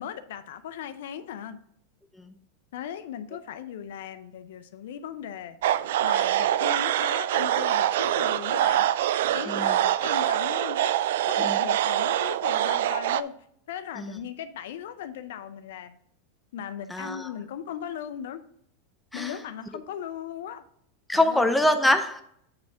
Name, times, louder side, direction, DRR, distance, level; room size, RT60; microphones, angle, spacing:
voice 1, 0.0-1.6 2.7-5.6 6.0-8.8 9.3-10.9 11.2-13.3 13.7-16.0 16.5-18.4 19.1-20.6 21.1-21.5, left 9 dB, 75° left, 11 dB, 0.6 m, -37 dB
sound 1, 5.6-13.2, right 12 dB, 75° right, 0.3 m, -24 dB
voice 2, 9.5-9.8 11.4-11.6 14.0-14.2 16.9-17.4 19.1-19.4 21.1-22.2, left 1 dB, 5° left, 7 dB, 0.8 m, -25 dB
9.0 x 3.4 x 5.6 m, 0.68 s
hypercardioid pair, 115°, 0 cm